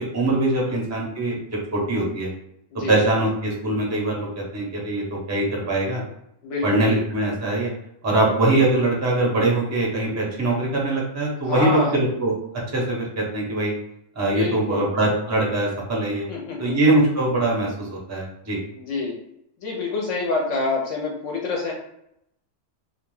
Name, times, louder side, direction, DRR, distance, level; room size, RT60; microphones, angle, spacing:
voice 1, 0.0-2.3 2.9-6.0 6.6-7.7 8.0-12.3 12.7-13.7 14.2-16.3 16.6-18.6, right 2 dB, 20° right, -3 dB, 0.4 m, -22 dB
voice 2, 6.4-6.8 11.4-12.0 14.2-14.9 16.3-16.8 18.7-19.2 19.6-21.7, left 3 dB, 75° left, -2 dB, 0.9 m, -27 dB
2.3 x 2.2 x 3.1 m, 0.78 s
omnidirectional pair, 1.4 m